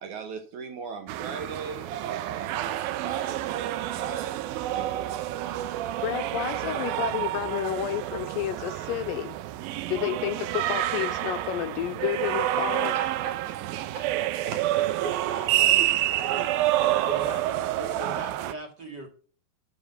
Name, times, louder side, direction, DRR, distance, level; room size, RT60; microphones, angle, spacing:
voice 1, 0.0-4.4 4.7-5.1 12.9-17.1, right 5 dB, 65° right, 6 dB, 2.2 m, -39 dB
sound 1, 1.1-18.5, right 14 dB, 80° right, 2.5 m, -28 dB
voice 2, 6.0-9.4 9.9-13.0, left 12 dB, 80° left, 9 dB, 2.2 m, -30 dB
voice 3, 17.1-19.1, right 2 dB, 35° right, 2 dB, 2.3 m, -39 dB
11.0 x 5.7 x 5.9 m, 0.40 s
omnidirectional pair, 4.3 m